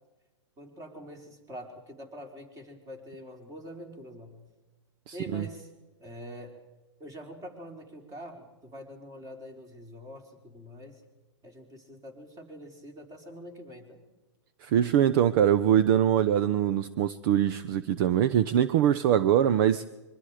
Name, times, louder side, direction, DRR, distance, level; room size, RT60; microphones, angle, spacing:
voice 1, 0.6-4.4 5.1-5.7 6.0-6.5 7.0-11.0 11.4-14.0, equal, 20° right, 4.7 m, -45 dB
voice 2, 5.1-5.4 14.6-19.8, right 10 dB, 50° right, 0.8 m, -23 dB
24.5 x 23.5 x 5.1 m
hypercardioid pair, 125°, 15 cm